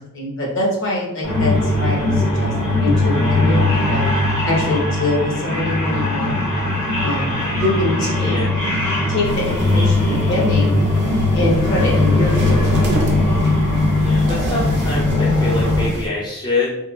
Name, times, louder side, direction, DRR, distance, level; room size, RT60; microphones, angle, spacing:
voice 1, 0.1-1.5 1.8-2.5 2.8-4.0 4.4-6.4 7.0-8.4 9.1-10.8 11.3-12.8, left 2 dB, 55° left, -4 dB, 0.9 m, -23 dB
sound 1, 1.2-15.9, left 2 dB, 85° left, 1.2 m, -19 dB
voice 2, 7.3-7.6 8.2-8.5 13.9-16.8, left 2 dB, 20° left, -6 dB, 0.4 m, -25 dB
sound 2, 9.2-16.1, right 1 dB, 50° right, 0.4 m, -31 dB
3.0 x 2.1 x 2.4 m, 0.88 s
head